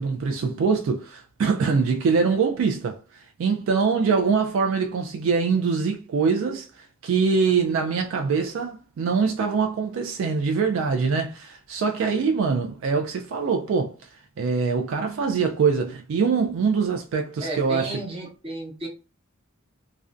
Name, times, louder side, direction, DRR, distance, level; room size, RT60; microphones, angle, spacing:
voice 1, 0.0-13.9 14.4-18.0, right 5 dB, 65° right, 0.3 m, -23 dB
voice 2, 17.4-18.9, right 2 dB, 25° right, 0.7 m, -33 dB
2.4 x 2.1 x 2.5 m
head